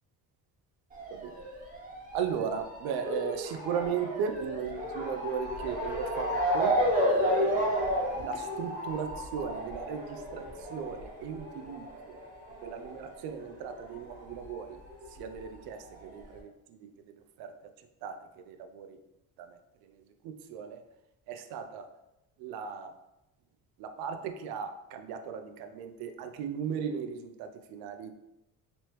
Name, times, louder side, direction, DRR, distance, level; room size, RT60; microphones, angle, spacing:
Motor vehicle (road) / Siren, 0.9-13.9 14.2-15.4 16.0-16.1 16.4-16.5, equal, 20° right, 1.1 m, -32 dB
voice 1, 2.1-7.6 8.2-12.2 12.6-14.7 15.2-16.2 17.4-17.5 18.0-18.2 18.5-18.9 20.2-20.8 21.3-21.9 22.4-22.9 23.8-28.1, right 7 dB, 80° right, 7 dB, 0.5 m, -36 dB
3.1 x 3.0 x 3.1 m, 0.93 s
cardioid pair, 100°, 37 cm